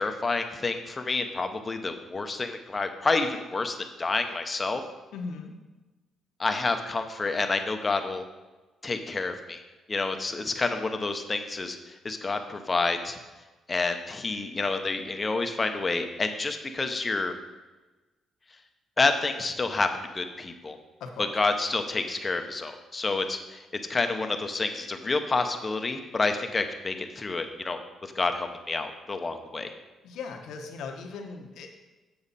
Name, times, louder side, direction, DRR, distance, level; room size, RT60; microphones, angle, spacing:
voice 1, 0.0-4.8 6.4-8.2 8.8-9.6 9.9-13.2 13.7-17.3 19.0-19.9 20.1-20.8 21.2-23.6 23.9-29.7, left 3 dB, 30° left, 7 dB, 0.9 m, -29 dB
voice 2, 5.1-5.5 21.0-21.3 30.0-31.7, left 4 dB, 80° left, 3 dB, 1.1 m, -38 dB
7.7 x 7.2 x 4.2 m, 1.2 s
cardioid pair, 90°, 0 cm